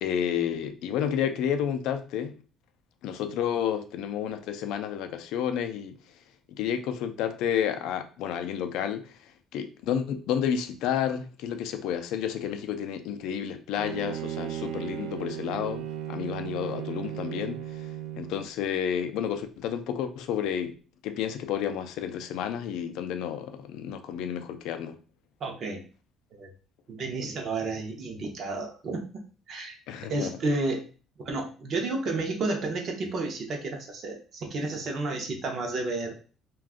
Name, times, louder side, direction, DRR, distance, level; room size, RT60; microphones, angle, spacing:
voice 1, 0.0-2.3 3.0-6.0 6.5-17.9 18.2-20.8 21.0-25.0 29.9-30.4, left 9 dB, 70° left, 0.4 m, -31 dB
Bowed string instrument, 13.8-18.5, right 11 dB, 85° right, 0.4 m, -36 dB
voice 2, 25.4-25.8 26.4-26.5 26.9-29.1 29.5-29.8 30.0-30.9 31.2-36.1, right 3 dB, 40° right, 0.6 m, -31 dB
2.5 x 2.2 x 3.5 m
cardioid pair, 175°, 0 cm